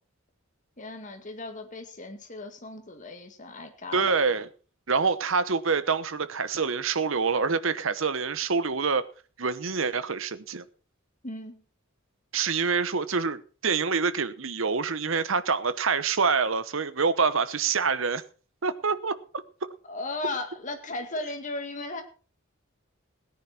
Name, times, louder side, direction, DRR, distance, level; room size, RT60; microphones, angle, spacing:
voice 1, 0.8-4.2 11.2-11.6 19.9-22.0, left 2 dB, 40° left, 2.2 m, -36 dB
voice 2, 3.9-4.5 4.9-9.1 9.4-10.6 12.3-18.2 18.6-19.2, right 5 dB, 70° right, 1.0 m, -26 dB
17.0 x 9.9 x 4.3 m
head